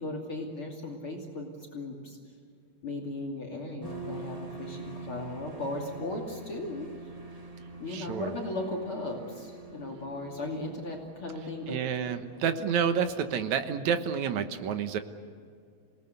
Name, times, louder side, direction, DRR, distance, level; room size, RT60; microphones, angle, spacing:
voice 1, 0.0-2.2 2.8-6.9 7.8-11.8, left 2 dB, 45° left, 0 dB, 3.3 m, -37 dB
sound 1, 3.8-13.7, right 4 dB, 15° right, 1.8 m, -45 dB
voice 2, 7.9-8.3 11.7-15.0, right 7 dB, 70° right, 9 dB, 2.5 m, -29 dB
28.0 x 18.5 x 8.1 m, 2.3 s
omnidirectional pair, 3.6 m